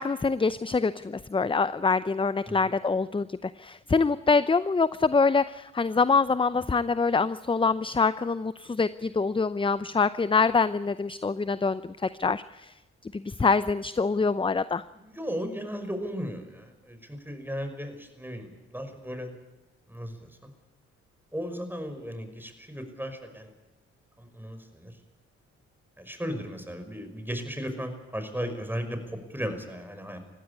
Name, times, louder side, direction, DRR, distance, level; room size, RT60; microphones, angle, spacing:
voice 1, 0.0-12.7 13.0-14.8, left 4 dB, 15° left, 15 dB, 0.7 m, -25 dB
voice 2, 14.9-19.3 19.9-20.5 21.3-23.5 24.2-25.0 26.0-30.2, equal, 5° right, 8 dB, 5.6 m, -36 dB
20.0 x 15.5 x 9.8 m, 1.1 s
hypercardioid pair, 45°, 31 cm